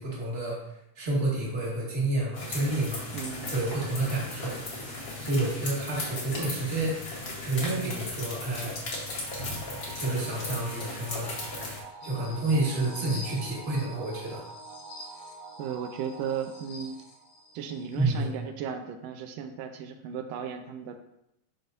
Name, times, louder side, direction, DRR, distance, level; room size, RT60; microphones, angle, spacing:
voice 1, 0.0-3.0 3.5-4.6 5.2-7.0 7.4-8.7 9.9-11.3 12.0-14.4 17.9-18.3, right 2 dB, 25° right, -5 dB, 1.4 m, -29 dB
sound 1, 2.3-11.8, left 2 dB, 60° left, 0.9 m, -36 dB
voice 2, 3.1-3.5 15.6-17.0 17.5-21.0, right 7 dB, 80° right, 7 dB, 2.2 m, -35 dB
sound 2, 9.2-17.8, right 4 dB, 50° right, 2.9 m, -47 dB
sound 3, 12.0-18.2, left 2 dB, 80° left, 2.8 m, -48 dB
12.0 x 4.0 x 2.6 m, 0.81 s
omnidirectional pair, 3.9 m